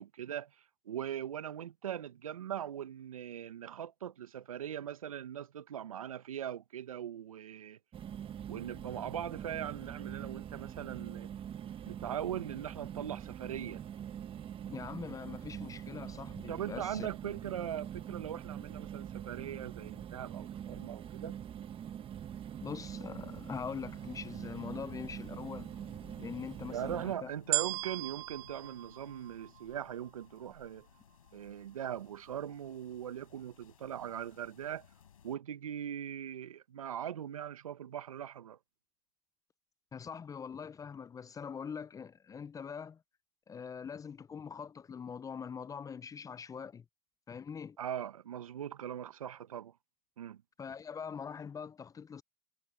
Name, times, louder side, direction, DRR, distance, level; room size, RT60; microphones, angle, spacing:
voice 1, 0.0-7.8 8.5-11.3 11.8-13.8 16.5-21.3 26.7-30.9 31.3-34.9 35.2-38.6 47.8-49.7 50.2-50.4, right 10 dB, 85° right, 1.3 m, -40 dB
sound 1, 7.9-27.2, right 9 dB, 30° right, 1.5 m, -44 dB
voice 2, 14.7-17.1 22.6-25.7 26.2-27.3 39.9-43.0 43.5-46.8 47.3-47.8 50.6-52.2, left 6 dB, 20° left, 0.6 m, -43 dB
sound 2, 23.2-35.4, left 8 dB, 90° left, 5.7 m, -60 dB
sound 3, 27.5-29.9 30.6-30.7, right 23 dB, 55° right, 1.4 m, -36 dB
hypercardioid pair, 95°, 17 cm